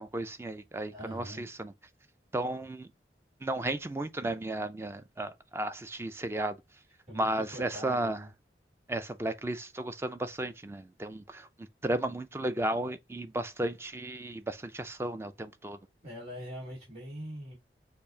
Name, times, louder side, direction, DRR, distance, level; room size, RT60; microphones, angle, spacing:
voice 1, 0.0-1.7 2.3-2.9 3.4-6.6 7.1-8.2 8.9-15.8, right 1 dB, 15° right, 0.3 m, -34 dB
voice 2, 0.9-1.5 7.1-8.3 16.0-17.5, equal, 35° right, 2.9 m, -43 dB
6.6 x 2.5 x 2.7 m
head